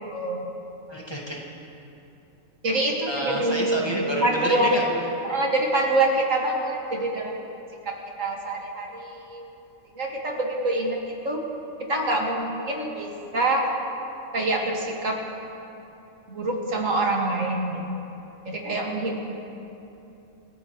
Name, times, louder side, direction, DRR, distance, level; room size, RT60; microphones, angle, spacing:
voice 1, 0.1-0.5 2.6-3.9 4.2-4.8 5.2-7.4 7.8-9.4 9.9-11.4 11.8-13.7 14.3-15.2 16.3-17.8 18.5-19.2, right 2 dB, 70° right, -1 dB, 2.4 m, -25 dB
voice 2, 0.9-1.4 3.1-5.1, right 1 dB, 20° left, -3 dB, 2.1 m, -29 dB
27.5 x 15.0 x 3.2 m, 2.8 s
omnidirectional pair, 1.4 m